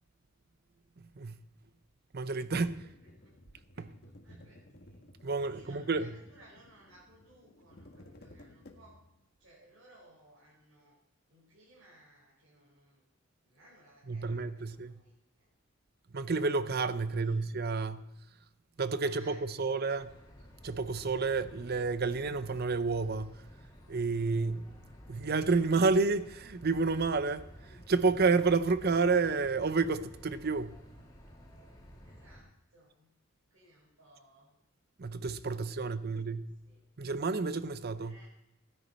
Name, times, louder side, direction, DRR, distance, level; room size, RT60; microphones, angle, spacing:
voice 1, 2.1-2.8 3.8-3.9 5.2-6.1 14.1-14.9 16.1-18.1 18.8-20.1 20.6-23.4 23.9-24.7 25.1-30.8 35.0-36.5 37.0-38.2, right 4 dB, 50° right, 0.7 m, -30 dB
sound 1, 2.5-9.2, left 1 dB, 50° left, 1.6 m, -56 dB
voice 2, 2.8-3.4 3.7-9.0 9.4-11.0 11.3-13.0 13.4-15.5 17.1-17.5 19.0-20.2 32.0-33.1 33.5-34.5 35.6-36.4 36.6-36.9 38.0-38.3, right 1 dB, 85° right, 4.7 m, -61 dB
sound 2, 19.9-32.4, equal, 20° left, 2.4 m, -53 dB
16.5 x 10.0 x 4.3 m
head